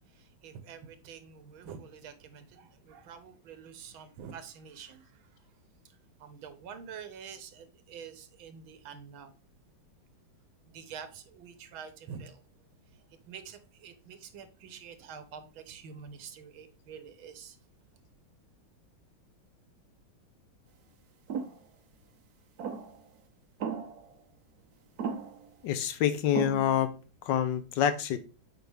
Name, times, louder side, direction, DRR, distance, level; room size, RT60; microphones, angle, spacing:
voice 1, 0.4-5.1 6.2-9.3 10.7-12.4 13.3-17.6, right 7 dB, 85° right, 1.7 m, -47 dB
sound 1, 21.3-21.6 22.6-23.0 23.6-24.1 25.0-25.5 26.4-26.9, right 6 dB, 60° right, 1.2 m, -36 dB
voice 2, 25.6-26.9 27.3-28.2, left 10 dB, 70° left, 1.2 m, -27 dB
7.7 x 4.6 x 3.4 m
omnidirectional pair, 2.2 m